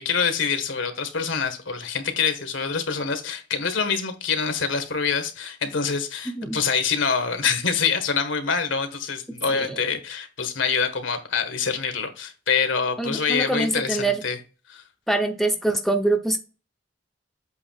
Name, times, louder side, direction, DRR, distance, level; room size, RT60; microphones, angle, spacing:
voice 1, 0.0-14.4 14.7-14.8, left 6 dB, 75° left, 1.4 m, -25 dB
voice 2, 13.0-14.2 15.1-16.4, right 2 dB, ahead, 0.7 m, -24 dB
8.0 x 2.8 x 5.7 m
head